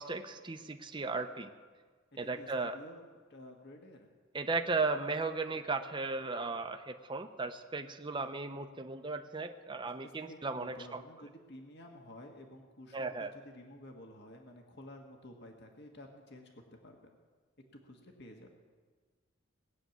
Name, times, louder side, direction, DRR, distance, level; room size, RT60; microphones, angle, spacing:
voice 1, 0.0-1.5 2.2-2.8 4.3-11.0 12.9-13.3, right 3 dB, 25° right, 6 dB, 0.7 m, -36 dB
voice 2, 2.2-4.1 9.8-16.5 16.8-17.2 17.8-18.6, left 1 dB, 60° left, 2 dB, 1.7 m, -52 dB
19.0 x 7.3 x 9.3 m, 1.5 s
head